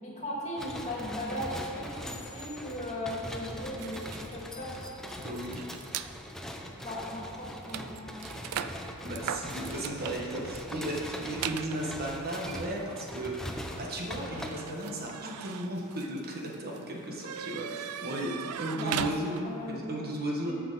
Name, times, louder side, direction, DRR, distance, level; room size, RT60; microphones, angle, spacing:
voice 1, 0.0-4.7 6.8-8.0 18.8-19.0 19.4-19.8 20.4-20.5, left 1 dB, 30° left, -4 dB, 2.3 m, -37 dB
sound 1, 0.6-14.5, equal, ahead, 0.6 m, -41 dB
sound 2, 3.8-6.1 6.8-7.0 7.2-19.7, right 9 dB, 85° right, 0.4 m, -40 dB
voice 2, 5.2-5.7 8.5-20.5, right 1 dB, 45° right, -2 dB, 1.3 m, -35 dB
13.5 x 6.0 x 4.1 m, 2.7 s
head